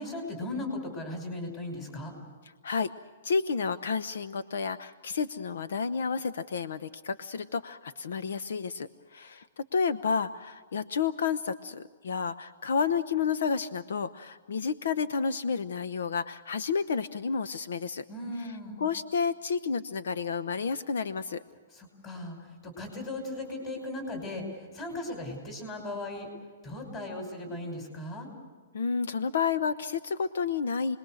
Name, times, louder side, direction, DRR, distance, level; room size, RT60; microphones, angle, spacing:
voice 1, 0.0-2.1 18.1-18.8 21.7-26.3 26.6-28.3, left 1 dB, 20° left, 4 dB, 5.7 m, -37 dB
voice 2, 3.2-18.0 18.8-21.4 28.7-31.0, left 5 dB, 80° left, 13 dB, 0.9 m, -30 dB
29.0 x 21.0 x 6.4 m, 1.5 s
hypercardioid pair, 165°, 0 cm